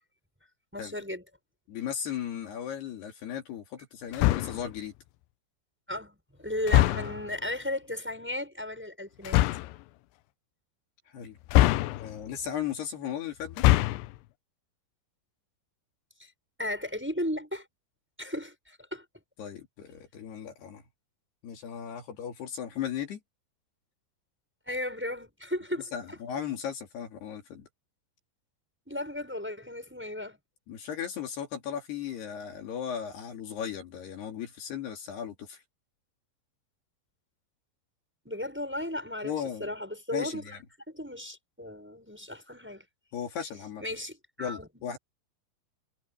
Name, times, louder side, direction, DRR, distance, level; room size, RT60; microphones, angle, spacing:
voice 1, 0.7-1.2 5.9-9.4 16.2-16.3 16.6-17.7 18.2-19.0 24.7-26.2 28.9-30.4 38.2-39.3 39.6-40.4 40.9-42.8 43.8-44.9, left 1 dB, ahead, 6.0 m, -35 dB
voice 2, 1.7-4.9 11.1-11.4 11.8-13.6 19.4-20.8 21.4-23.2 25.9-27.7 30.7-35.6 39.2-39.7 40.1-40.6 43.1-43.8 44.4-45.0, left 8 dB, 65° left, 4.5 m, -36 dB
sound 1, 4.1-4.7 6.7-7.3 9.2-9.8 11.5-12.3 13.5-14.2, left 16 dB, 85° left, 2.9 m, -23 dB
omnidirectional pair, 5.1 m